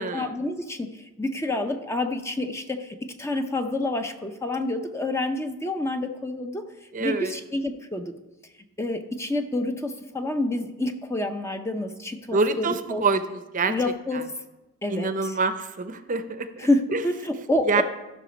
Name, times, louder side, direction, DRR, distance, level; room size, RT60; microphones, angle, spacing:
voice 1, 0.0-6.7 7.0-8.1 8.8-13.0 13.7-14.3 14.8-15.4 16.6-17.8, left 2 dB, 10° left, 6 dB, 0.5 m, -28 dB
voice 2, 6.9-7.4 12.3-13.8 14.1-14.2 14.9-17.0 17.7-17.8, right 3 dB, 35° right, 10 dB, 0.6 m, -26 dB
14.5 x 5.9 x 5.1 m, 1.1 s
head